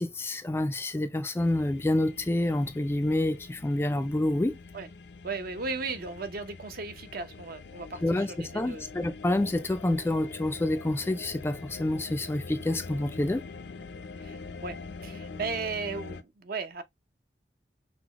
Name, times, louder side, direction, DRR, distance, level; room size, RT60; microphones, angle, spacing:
voice 1, 0.0-4.6 8.0-13.4, left 1 dB, 15° left, 0.3 m, -28 dB
sound 1, 1.4-16.2, left 4 dB, 75° left, 0.5 m, -44 dB
voice 2, 5.2-8.9 14.2-14.8 15.0-16.8, right 4 dB, 55° right, 0.7 m, -36 dB
5.9 x 2.1 x 2.9 m
head